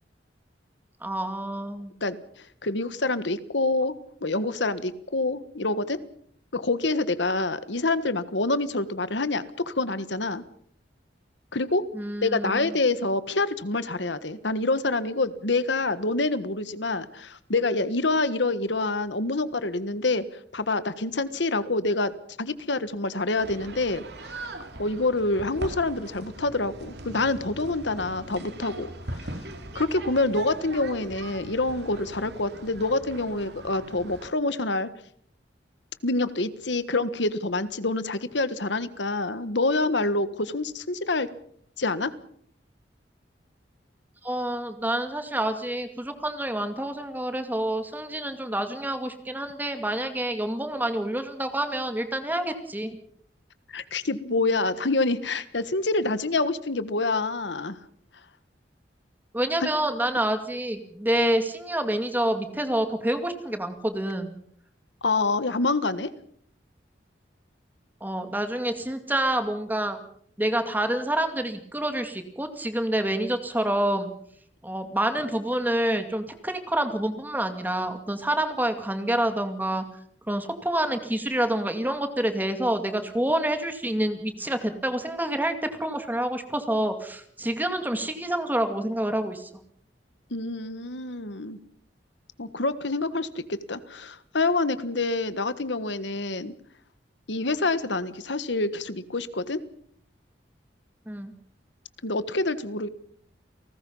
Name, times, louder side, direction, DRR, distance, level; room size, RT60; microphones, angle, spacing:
voice 1, 1.0-1.9 11.9-12.8 44.2-53.0 59.3-64.3 68.0-70.0 70.4-74.1 74.6-79.8 80.3-89.5 101.1-101.3, right 1 dB, 10° right, 7 dB, 2.3 m, -27 dB
voice 2, 2.6-3.9 4.2-6.0 6.5-10.4 11.5-11.8 12.2-20.3 20.5-24.0 24.8-28.9 29.1-29.3 29.7-34.9 36.0-41.3 41.8-42.1 53.7-57.8 59.6-59.7 65.0-66.1 90.3-91.6 92.4-96.5 97.3-99.6 102.0-102.9, left 2 dB, 75° left, 13 dB, 1.5 m, -26 dB
sound 1, 23.4-34.3, right 2 dB, 65° right, 2.7 m, -40 dB
30.0 x 19.0 x 5.6 m, 0.64 s
head